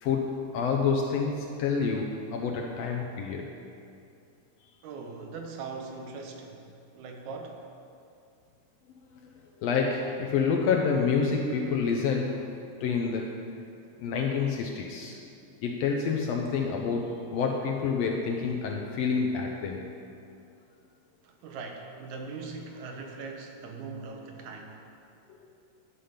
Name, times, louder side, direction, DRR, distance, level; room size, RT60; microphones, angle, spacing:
voice 1, 0.0-3.5 9.2-13.5 14.0-15.2 15.6-19.9 25.4-25.5, left 5 dB, 80° left, 1 dB, 1.6 m, -28 dB
voice 2, 4.8-6.7 6.9-7.6 21.2-24.8, right 4 dB, 80° right, 3 dB, 2.3 m, -40 dB
11.5 x 5.1 x 5.7 m, 2.5 s
omnidirectional pair, 3.4 m